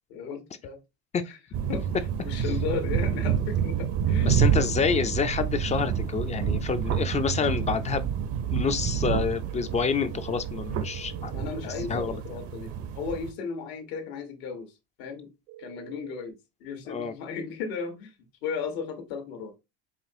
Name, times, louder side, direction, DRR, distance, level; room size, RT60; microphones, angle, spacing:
voice 1, 0.1-0.8 1.3-1.4 1.7-4.7 11.3-14.7 15.0-15.3 15.6-18.1 18.4-19.6, left 5 dB, 80° left, 1.3 m, -35 dB
sound 1, 1.5-13.3, right 8 dB, 50° right, 0.7 m, -28 dB
sound 2, 3.5-5.5 9.5-11.5 15.5-16.3, right 13 dB, 75° right, 0.9 m, -47 dB
voice 2, 4.3-8.1 8.5-11.3 11.9-12.1 16.9-17.1, left 6 dB, 20° left, 0.4 m, -28 dB
4.9 x 2.9 x 2.6 m
supercardioid pair, 100°, 31 cm